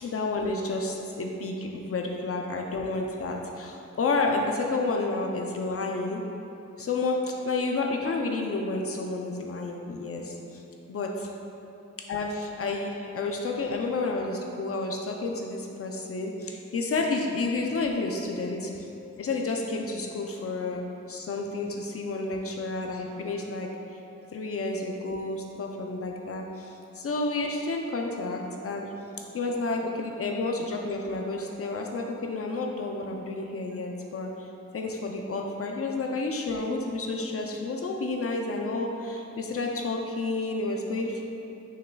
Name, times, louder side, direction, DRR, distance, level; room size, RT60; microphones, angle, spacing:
voice 1, 0.0-6.2 6.8-10.6 10.9-11.3 12.0-18.9 19.2-24.0 24.3-28.9 29.3-34.5 34.7-41.2, left 3 dB, 50° left, 1 dB, 0.5 m, -30 dB
6.5 x 6.5 x 2.3 m, 2.8 s
wide cardioid pair, 155°, 30 cm